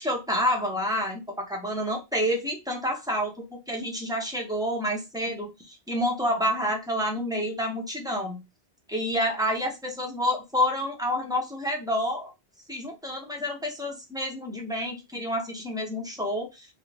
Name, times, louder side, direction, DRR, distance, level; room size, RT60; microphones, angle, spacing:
voice 1, 0.0-8.4 8.9-12.3 12.7-16.7, equal, 5° right, -1 dB, 0.4 m, -29 dB
2.4 x 2.1 x 3.2 m, 0.23 s
omnidirectional pair, 1.1 m